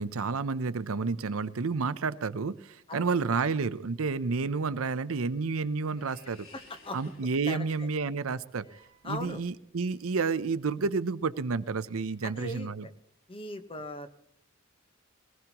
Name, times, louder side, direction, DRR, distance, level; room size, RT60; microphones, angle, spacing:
voice 1, 0.0-6.5 6.9-8.7 9.0-12.9, right 4 dB, 75° right, 14 dB, 0.6 m, -30 dB
sound 1, 5.0-9.6, left 2 dB, 80° left, 4.6 m, -58 dB
voice 2, 6.5-7.0 7.5-7.9 9.0-9.4 12.2-12.9 13.3-14.1, left 2 dB, 25° left, 8 dB, 1.1 m, -39 dB
22.0 x 18.5 x 3.0 m, 0.71 s
head